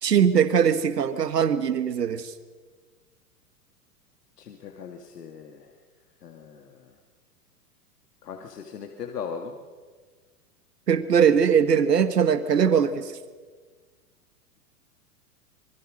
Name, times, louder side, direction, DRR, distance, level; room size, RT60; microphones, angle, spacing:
voice 1, 0.0-2.3 10.9-13.1, right 7 dB, 85° right, 12 dB, 1.5 m, -21 dB
voice 2, 4.4-5.7 6.2-6.9 8.2-9.5, left 6 dB, 75° left, 4 dB, 2.5 m, -39 dB
26.5 x 22.0 x 6.5 m, 1.5 s
hypercardioid pair, 105°, 47 cm